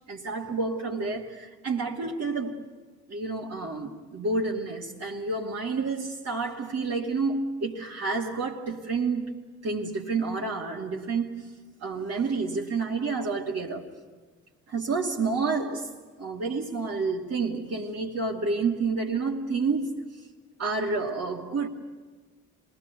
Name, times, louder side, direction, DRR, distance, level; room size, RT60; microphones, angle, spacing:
voice 1, 0.1-2.6 3.1-9.3 9.6-11.5 11.8-13.9 14.7-15.9 16.2-19.9 20.6-21.7, right 4 dB, 55° right, 2.8 m, -29 dB
27.0 x 20.5 x 8.4 m
cardioid pair, 90°, 30 cm